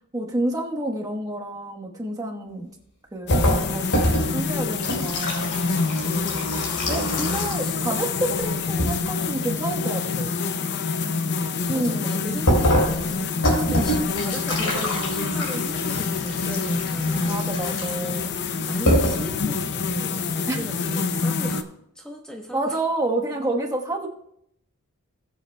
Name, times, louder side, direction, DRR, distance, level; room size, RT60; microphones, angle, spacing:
voice 1, 0.1-2.7 3.1-5.5 6.9-10.4 11.7-12.1 17.2-18.3 20.5-20.6 22.5-24.1, right 2 dB, 15° right, 0 dB, 1.1 m, -29 dB
sound 1, 3.3-7.8 8.0-8.9 12.5-18.2 18.6-18.7 18.9-19.3, equal, 70° left, 3.8 m, -25 dB
sound 2, 3.3-21.6, left 4 dB, 50° left, 0.6 m, -27 dB
voice 2, 6.0-6.8 7.6-7.8 11.0-13.0 13.5-17.4 18.6-21.7 21.9-22.8, equal, 5° left, 0 dB, 0.9 m, -36 dB
20.5 x 7.8 x 2.2 m, 0.75 s
head